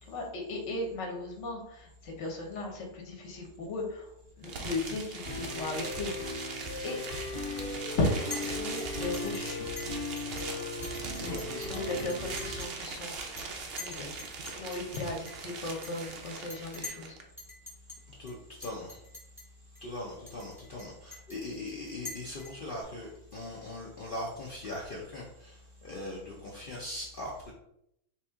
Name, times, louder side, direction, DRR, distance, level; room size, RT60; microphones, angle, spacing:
voice 1, 0.0-4.1 4.4-6.1 6.8-7.0 7.9-9.7 11.7-14.1 14.5-17.2, left 2 dB, 50° left, 2 dB, 1.0 m, -36 dB
sound 1, 4.4-17.2, right 4 dB, 70° right, 0.5 m, -41 dB
sound 2, 5.3-12.6, left 2 dB, 20° left, 1.3 m, -38 dB
Chink clink, 8.3-8.5 8.8-10.4 10.8-12.8 13.1-13.4 13.8-17.1 17.4-18.0 18.3-18.4 18.6-19.4 19.7-19.8 20.3-22.8, left 3 dB, ahead, 0.8 m, -45 dB
voice 2, 11.2-11.8 18.1-19.0 19.8-27.5, left 1 dB, 80° left, -3 dB, 0.4 m, -40 dB
4.2 x 3.0 x 3.5 m, 0.77 s
omnidirectional pair, 1.8 m